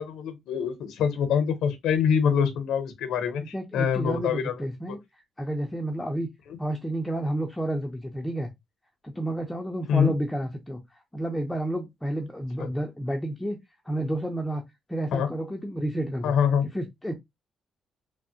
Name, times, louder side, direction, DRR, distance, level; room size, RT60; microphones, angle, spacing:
voice 1, 0.0-4.6 9.9-10.1 12.6-12.7 15.1-15.3 16.2-16.6, left 7 dB, 80° left, 0.6 m, -25 dB
voice 2, 3.4-6.3 6.6-8.5 9.0-13.6 13.8-14.6 14.9-16.3 16.7-17.1, right 1 dB, 5° left, 0.5 m, -31 dB
3.2 x 2.0 x 2.7 m
cardioid pair, 90°, 0 cm